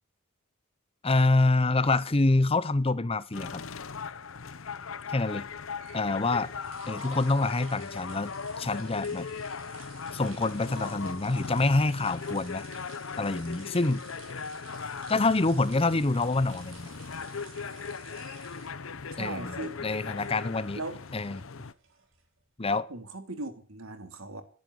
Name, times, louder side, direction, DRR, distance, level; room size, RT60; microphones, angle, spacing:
voice 1, 1.0-3.6 5.1-5.5 5.9-6.5 6.9-9.3 10.1-12.7 13.2-14.1 15.1-16.9 19.2-19.6 19.8-20.8 21.1-21.4 22.6-22.9, left 2 dB, 25° left, 0.7 m, -26 dB
sound 1, 3.3-21.7, left 5 dB, 70° left, 0.8 m, -39 dB
sound 2, 5.6-22.5, right 7 dB, 65° right, 3.9 m, -54 dB
voice 2, 19.1-19.8 20.7-21.0 22.9-24.4, right 2 dB, 80° right, 2.9 m, -38 dB
11.0 x 10.5 x 9.8 m
head